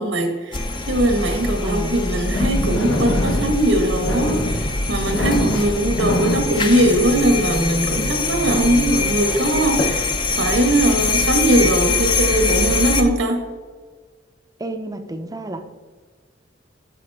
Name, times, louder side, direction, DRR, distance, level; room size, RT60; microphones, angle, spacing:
voice 1, 0.0-13.4, right 1 dB, 80° right, 4 dB, 1.5 m, -20 dB
sound 1, 0.5-13.0, left 3 dB, 25° left, 0.6 m, -23 dB
voice 2, 1.6-2.0 5.4-5.8 14.6-15.6, right 1 dB, 20° right, 7 dB, 0.6 m, -30 dB
sound 2, 1.9-7.4, left 1 dB, 85° left, 1.4 m, -25 dB
9.9 x 6.2 x 3.5 m, 1.5 s
head